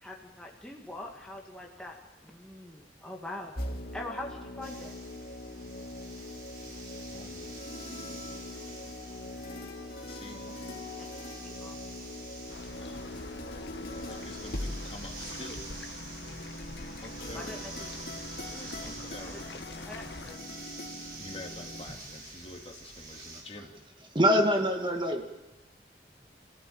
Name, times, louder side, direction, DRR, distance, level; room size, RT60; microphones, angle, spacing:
voice 1, 0.0-5.0 11.0-11.1 11.4-11.8 17.3-17.9 19.2-19.4 19.9-20.4, left 1 dB, 5° left, -1 dB, 2.1 m, -43 dB
sound 1, 3.6-21.8, left 1 dB, 55° left, 2.8 m, -42 dB
sound 2, 4.6-23.4, right 3 dB, 55° right, 5.8 m, -47 dB
voice 2, 7.1-7.5 10.1-10.4 12.8-13.1 13.7-15.6 17.0-17.5 18.5-19.4 21.2-23.7, left 2 dB, 35° left, 2 dB, 2.9 m, -46 dB
sound 3, 12.5-20.3, left 3 dB, 85° left, 1.6 m, -45 dB
voice 3, 24.1-25.3, equal, 25° right, 4 dB, 2.0 m, -24 dB
27.0 x 16.0 x 8.9 m, 1.1 s
head